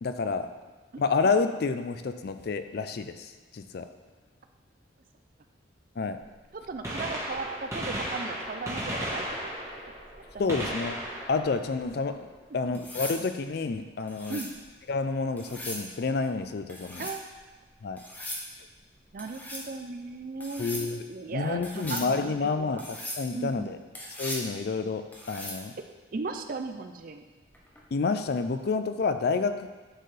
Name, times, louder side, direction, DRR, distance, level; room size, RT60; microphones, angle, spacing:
voice 1, 0.0-0.5 1.0-3.9 6.0-6.2 10.4-11.0 11.3-12.2 12.5-14.4 14.9-17.0 17.8-18.0 20.6-21.0 21.3-23.8 24.2-25.7 27.9-29.7, left 4 dB, 55° left, 9 dB, 0.4 m, -29 dB
voice 2, 6.5-9.4 10.3-10.6 12.5-12.9 14.3-14.5 17.0-17.3 19.1-20.6 21.1-22.8 23.3-23.8 26.1-27.2, right 3 dB, 45° right, 7 dB, 0.4 m, -37 dB
Gunshot gunfire, 6.7-12.6 14.5-14.6 15.6-15.7 17.3-17.4 18.8-18.9 19.1-19.2, equal, 15° right, 1.3 m, -35 dB
sound 1, 12.7-13.2 14.1-14.5 15.4-15.9 16.7-17.2 18.0-18.4 19.2-19.7 20.4-20.9 21.6-22.1 22.8-23.2 23.9-24.5 25.1-25.6 27.5-27.8, left 1 dB, 10° left, 0.9 m, -38 dB
10.0 x 4.6 x 3.3 m, 1.3 s
head